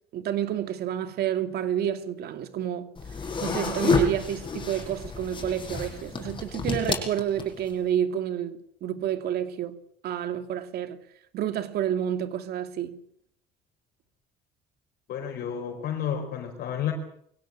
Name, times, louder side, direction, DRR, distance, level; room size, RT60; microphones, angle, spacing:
voice 1, 0.1-2.9 3.4-9.8 10.0-11.0 11.3-13.0, right 10 dB, 70° right, 2.6 m, -29 dB
sound 1, 3.0-7.7, left 3 dB, 30° left, 7.7 m, -29 dB
voice 2, 15.1-16.9, left 9 dB, 70° left, 4.7 m, -31 dB
23.5 x 17.0 x 9.0 m
cardioid pair, 110°, 17 cm